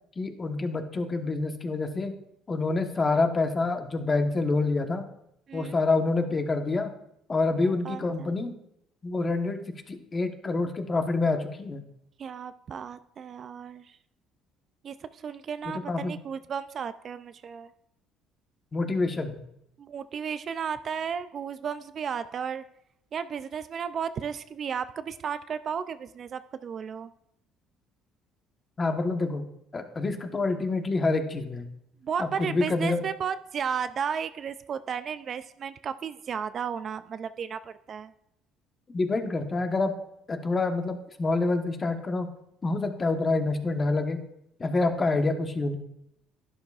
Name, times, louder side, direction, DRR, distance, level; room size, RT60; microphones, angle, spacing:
voice 1, 0.2-2.1 2.5-5.1 5.5-6.9 7.3-8.5 9.0-11.8 15.6-16.2 18.7-19.4 28.8-29.4 29.7-31.7 32.2-33.0 38.9-39.9 40.3-42.3 42.6-44.2 44.6-45.8, left 3 dB, 30° left, 6 dB, 1.1 m, -27 dB
voice 2, 7.6-8.3 12.2-13.8 14.8-17.7 19.8-22.6 23.1-27.1 32.0-38.1, right 7 dB, 45° right, 12 dB, 0.4 m, -34 dB
11.5 x 11.0 x 2.4 m, 0.76 s
cardioid pair, 105°, 0 cm